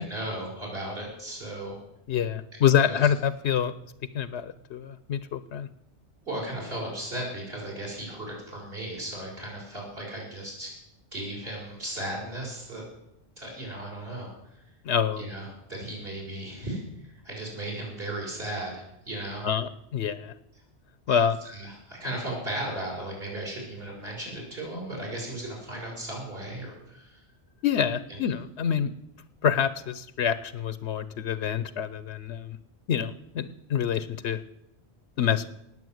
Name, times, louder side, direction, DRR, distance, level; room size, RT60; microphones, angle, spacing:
voice 1, 0.0-1.8 2.8-3.0 6.2-10.7 11.1-12.8 13.4-14.6 15.2-19.5 21.1-21.2 21.4-27.2, right 1 dB, 60° right, -3 dB, 6.0 m, -36 dB
voice 2, 2.1-3.7 4.1-5.7 14.8-15.2 19.4-20.3 21.1-21.4 27.6-28.9 29.4-32.6 32.9-34.4 35.2-35.5, left 8 dB, 75° left, 14 dB, 1.0 m, -26 dB
19.0 x 7.7 x 7.8 m, 0.82 s
omnidirectional pair, 1.2 m